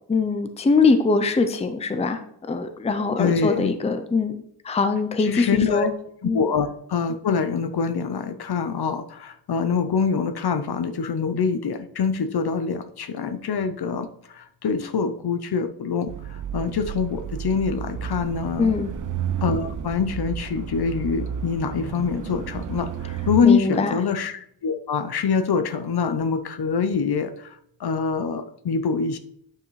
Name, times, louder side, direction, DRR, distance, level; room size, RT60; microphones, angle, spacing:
voice 1, 0.1-2.2 2.5-4.4 4.6-5.9 6.2-6.4 18.6-18.9 23.4-23.9, left 4 dB, 15° left, 9 dB, 0.5 m, -22 dB
voice 2, 3.2-3.7 5.2-5.9 6.2-18.8 19.4-29.2, left 5 dB, 60° left, 10 dB, 0.7 m, -25 dB
sound 1, 16.1-23.4, right 8 dB, 45° right, 0.4 m, -32 dB
9.3 x 5.7 x 3.1 m, 0.69 s
wide cardioid pair, 150°, 44 cm